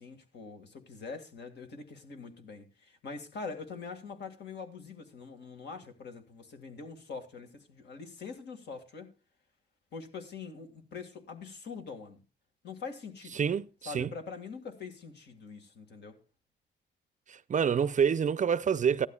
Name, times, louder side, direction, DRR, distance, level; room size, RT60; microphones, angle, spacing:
voice 1, 0.0-9.1 9.9-12.2 12.6-13.5 13.9-16.2, left 4 dB, 70° left, 1.9 m, -44 dB
voice 2, 13.4-14.1 17.3-19.1, right 7 dB, 40° right, 0.5 m, -27 dB
15.0 x 12.0 x 2.3 m
cardioid pair, 85°, 19 cm